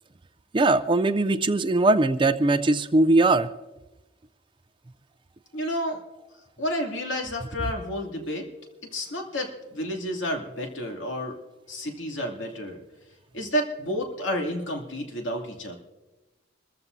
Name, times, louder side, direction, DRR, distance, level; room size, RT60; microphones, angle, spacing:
voice 1, 0.5-3.5, right 2 dB, 25° right, 13 dB, 0.4 m, -20 dB
voice 2, 5.5-6.0 6.6-8.5 8.9-11.4 11.7-12.8 13.3-15.8, equal, 70° left, 2 dB, 2.6 m, -30 dB
26.5 x 14.5 x 2.7 m, 1.1 s
head